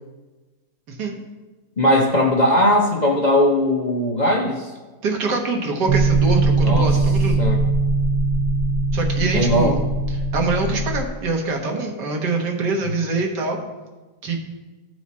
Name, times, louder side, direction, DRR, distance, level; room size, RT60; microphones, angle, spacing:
voice 1, 1.8-4.7 6.6-7.0 7.4-7.6 9.3-9.8, left 1 dB, 40° left, -1 dB, 0.7 m, -19 dB
voice 2, 5.0-7.4 8.9-9.8 10.1-13.6 14.2-14.4, right 3 dB, 85° right, 2 dB, 1.8 m, -24 dB
sound 1, 5.9-11.0, right 3 dB, 65° right, 0.9 m, -20 dB
14.5 x 4.8 x 4.2 m, 1.2 s
omnidirectional pair, 1.8 m